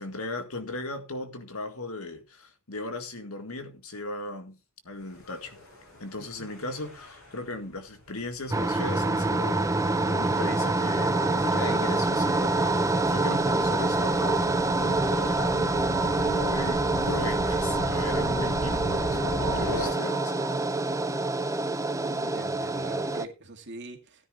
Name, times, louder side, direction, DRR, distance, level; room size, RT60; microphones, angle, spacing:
voice 1, 0.0-4.6 4.8-5.6 6.0-9.8 10.0-14.4 14.8-15.8 16.0-20.3, left 2 dB, 90° left, 1.9 m, -37 dB
Gull seagull / Waves surf / Siren, 5.1-19.9, left 1 dB, 70° left, 7.8 m, -38 dB
voice 2, 6.2-6.5 22.1-24.3, right 2 dB, 55° right, 2.2 m, -43 dB
sound 1, 8.5-23.3, right 2 dB, 15° right, 0.5 m, -26 dB
sound 2, 9.0-20.6, right 8 dB, 90° right, 1.7 m, -39 dB
16.5 x 10.0 x 2.5 m
head